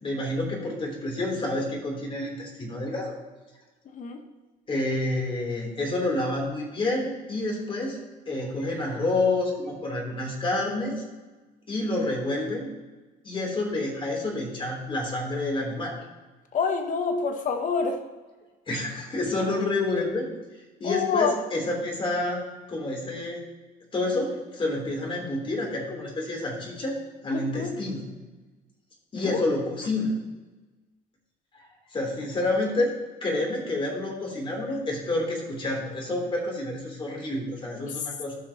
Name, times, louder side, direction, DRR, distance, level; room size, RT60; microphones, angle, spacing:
voice 1, 0.0-3.2 4.7-8.0 8.3-11.0 11.7-12.7 13.2-15.9 18.7-20.3 20.8-22.4 22.7-23.4 23.9-26.9 27.2-28.0 29.1-30.1 31.9-32.9 33.2-38.3, left 2 dB, 30° left, -1 dB, 3.3 m, -28 dB
voice 2, 16.5-18.0 20.8-21.4 27.3-27.7 29.2-29.4 37.8-37.9, left 5 dB, 50° left, 6 dB, 1.2 m, -27 dB
15.0 x 6.1 x 2.9 m, 1.2 s
cardioid pair, 110°, 17 cm